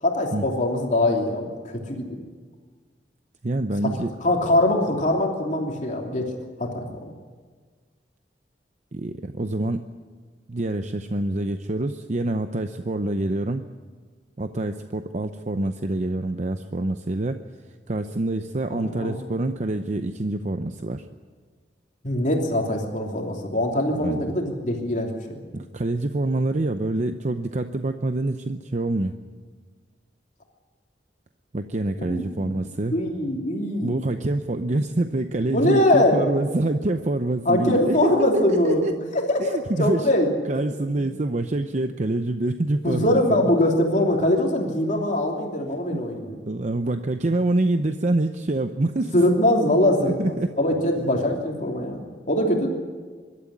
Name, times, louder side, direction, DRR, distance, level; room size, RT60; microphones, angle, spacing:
voice 1, 0.0-2.1 4.2-6.3 6.6-7.1 18.7-19.2 22.0-25.4 32.0-32.5 32.9-33.9 35.5-36.2 37.4-38.9 39.1-40.3 42.8-46.4 49.1-52.0 52.3-52.7, left 1 dB, 45° left, 1 dB, 3.0 m, -22 dB
voice 2, 3.4-4.1 8.9-9.9 10.5-13.6 14.4-17.4 17.9-21.1 24.0-24.4 25.5-29.2 31.5-33.0 33.8-38.9 39.4-40.1 40.5-43.5 46.5-49.2 50.0-50.6, right 2 dB, 45° right, 8 dB, 0.7 m, -26 dB
23.0 x 12.5 x 9.8 m, 1.5 s
head